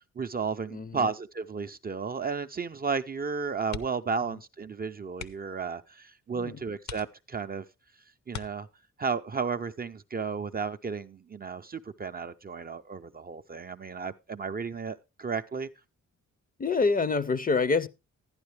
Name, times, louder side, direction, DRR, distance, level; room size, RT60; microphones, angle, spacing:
voice 1, 0.2-7.6 8.3-8.7 9.0-15.7, right 5 dB, 30° right, 0.5 m, -33 dB
voice 2, 0.7-1.1 6.3-6.6 16.6-17.9, left 4 dB, 30° left, 0.5 m, -26 dB
sound 1, 3.7-4.2 4.5-4.7 5.1-5.6 6.2-6.3 6.8-7.6 8.3-9.1 10.6-10.9 11.3-11.4, left 7 dB, 60° left, 0.8 m, -43 dB
11.5 x 10.5 x 3.2 m
wide cardioid pair, 130°, 31 cm